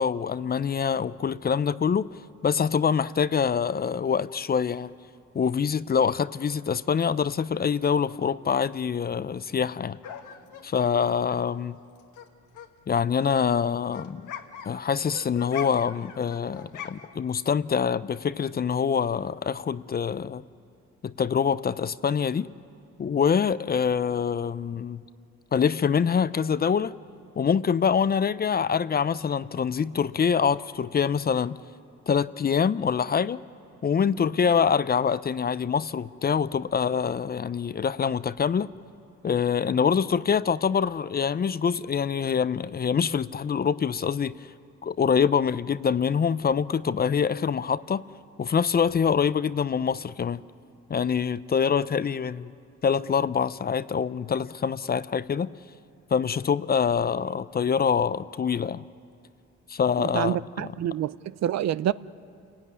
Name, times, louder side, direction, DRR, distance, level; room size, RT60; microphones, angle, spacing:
voice 1, 0.0-4.9 5.3-10.0 10.6-11.8 12.9-14.2 14.7-20.4 21.0-22.5 23.0-25.0 25.5-26.9 27.4-31.6 32.1-33.4 33.8-38.7 39.2-44.4 44.8-48.0 48.4-50.4 50.9-52.5 52.8-55.5 56.1-58.8 59.7-60.7, left 6 dB, 30° left, 0.5 m, -25 dB
sound 1, 10.0-12.3 12.5-17.3, left 9 dB, 80° left, 1.4 m, -43 dB
voice 2, 60.0-61.9, right 11 dB, 60° right, 0.6 m, -27 dB
29.5 x 16.5 x 9.5 m
cardioid pair, 90°, 30 cm